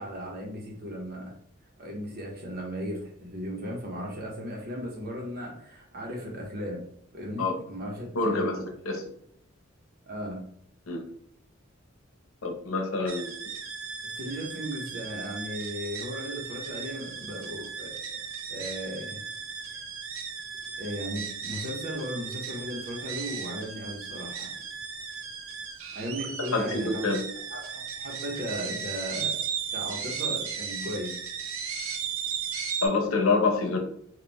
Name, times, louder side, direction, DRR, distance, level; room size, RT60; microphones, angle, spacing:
voice 1, 0.0-1.3 1.8-6.8 7.1-8.7 10.0-10.4 14.2-17.9 18.5-19.2 20.8-24.5 25.9-27.2 27.5-29.4 29.7-31.2, equal, 50° right, 0 dB, 1.1 m, -36 dB
voice 2, 8.1-8.6 8.9-9.1 10.9-11.0 12.4-13.3 26.5-27.2 32.8-33.8, left 3 dB, 90° left, 4 dB, 0.8 m, -26 dB
sound 1, 13.1-32.9, right 6 dB, 70° right, 0.7 m, -36 dB
4.2 x 2.6 x 3.5 m, 0.69 s
head